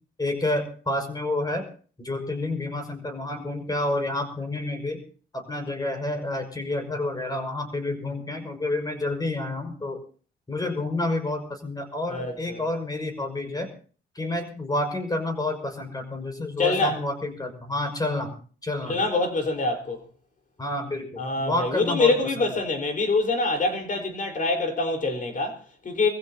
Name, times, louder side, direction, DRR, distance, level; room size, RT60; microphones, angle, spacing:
voice 1, 0.2-1.7 2.0-5.0 5.3-10.0 10.5-13.7 14.2-18.4 18.6-19.0 20.6-22.5, left 2 dB, 20° left, 5.6 m, -29 dB
voice 2, 12.1-12.6 16.6-17.0 18.9-20.1 21.2-26.1, left 3 dB, 40° left, 4.7 m, -25 dB
24.5 x 15.5 x 2.9 m
cardioid pair, 90°, 20 cm